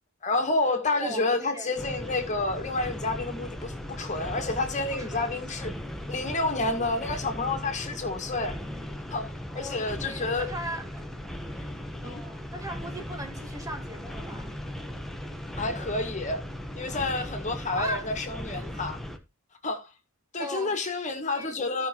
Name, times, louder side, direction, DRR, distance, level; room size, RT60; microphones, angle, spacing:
voice 1, 0.2-5.7 6.1-8.6 9.1-10.5 12.0-12.2 15.6-16.4 16.8-19.0 19.6-19.9 20.3-21.9, left 2 dB, 35° left, 1.8 m, -29 dB
voice 2, 0.9-1.7 4.9-5.4 9.5-11.0 11.5-11.7 12.0-14.5 17.7-18.1 18.5-18.7 20.4-20.8 21.3-21.6, right 1 dB, 15° right, 1.6 m, -38 dB
sound 1, 1.8-19.2, left 1 dB, ahead, 1.1 m, -38 dB
15.5 x 5.9 x 3.0 m
head